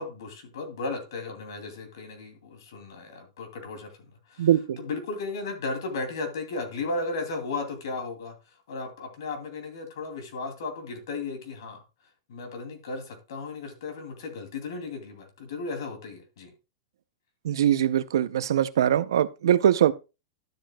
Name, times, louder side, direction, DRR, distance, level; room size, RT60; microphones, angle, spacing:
voice 1, 0.0-3.9 4.3-4.5 4.8-8.3 8.7-11.8 12.3-16.5, left 3 dB, 75° left, 2.6 m, -35 dB
voice 2, 4.4-4.8 17.4-19.9, right 10 dB, 90° right, 0.5 m, -22 dB
12.0 x 7.6 x 2.2 m
supercardioid pair, 165°, 2 cm